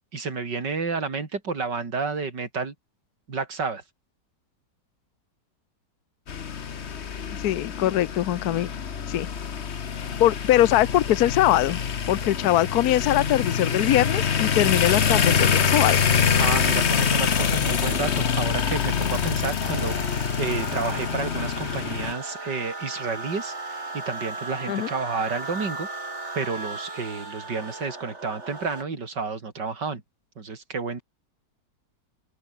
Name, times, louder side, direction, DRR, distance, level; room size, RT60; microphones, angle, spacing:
voice 1, 0.1-2.7 3.3-3.8 16.4-20.0 20.4-25.9 26.4-30.0 30.4-31.0, right 4 dB, 85° right, 3.9 m, -30 dB
sound 1, 6.3-22.1, left 7 dB, 45° left, 1.3 m, -25 dB
voice 2, 7.4-8.7 9.1-9.3 10.2-11.8 12.1-16.0 24.7-24.9, left 13 dB, 65° left, 1.2 m, -22 dB
sound 2, 19.6-28.8, right 3 dB, 40° right, 3.8 m, -36 dB
open air
omnidirectional pair, 1.8 m